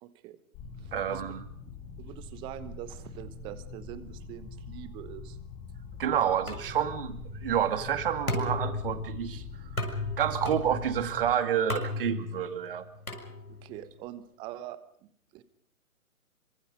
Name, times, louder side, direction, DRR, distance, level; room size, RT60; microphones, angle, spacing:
voice 1, 0.0-0.4 0.8-1.3 2.0-5.4 13.5-15.4, right 12 dB, 10° right, 15 dB, 1.0 m, -44 dB
sound 1, 0.5-11.3, left 4 dB, 25° left, 5.0 m, -44 dB
voice 2, 0.9-1.4 6.0-9.4 10.2-12.9, right 9 dB, 40° right, 10 dB, 2.3 m, -29 dB
sound 2, 6.5-13.8, left 2 dB, 90° left, 6.5 m, -36 dB
26.5 x 25.5 x 5.3 m, 0.64 s
figure-of-eight pair, 135°, 42 cm